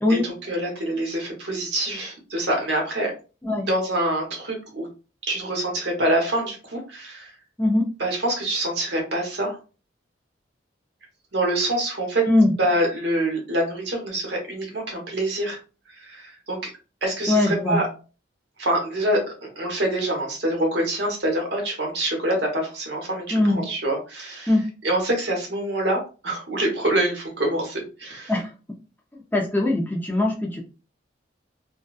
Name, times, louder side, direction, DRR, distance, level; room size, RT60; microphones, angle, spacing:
voice 1, 0.1-3.1 3.7-4.9 5.3-7.3 8.0-9.6 11.3-12.2 12.6-15.6 15.9-16.7 17.0-17.9 18.6-19.2 19.6-24.5 24.8-28.3, right 1 dB, 65° right, 0 dB, 1.0 m, -25 dB
voice 2, 7.6-7.9 12.3-12.5 17.3-17.8 23.3-23.7 24.5-24.7 28.3-28.5 29.3-30.6, left 1 dB, 10° left, -1 dB, 0.4 m, -21 dB
2.6 x 2.2 x 2.3 m, 0.33 s
head